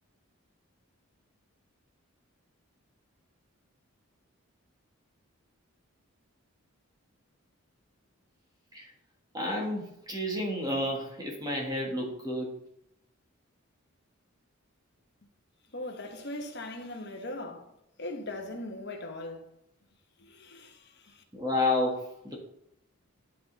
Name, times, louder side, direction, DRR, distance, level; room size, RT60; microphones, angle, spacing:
voice 1, 9.3-12.5 21.3-22.4, left 1 dB, 15° right, 1.7 m, -30 dB
voice 2, 15.7-17.7 18.0-19.5 20.2-21.2, left 1 dB, 50° left, 1.1 m, -40 dB
11.5 x 4.1 x 4.0 m
head